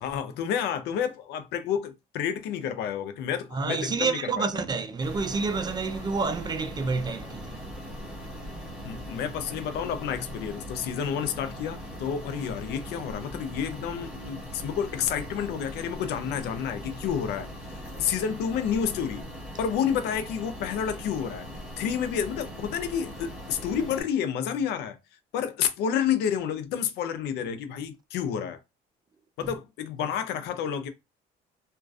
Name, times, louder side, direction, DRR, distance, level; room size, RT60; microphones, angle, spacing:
voice 1, 0.0-4.5 8.8-19.3 19.6-21.5 21.8-25.0 25.3-28.6 29.4-30.9, left 8 dB, 80° left, 0.5 m, -30 dB
voice 2, 3.5-7.6, right 4 dB, 25° right, 0.3 m, -29 dB
sound 1, 5.0-24.0, equal, 5° right, 1.0 m, -40 dB
2.4 x 2.2 x 2.3 m
cardioid pair, 110°, 17 cm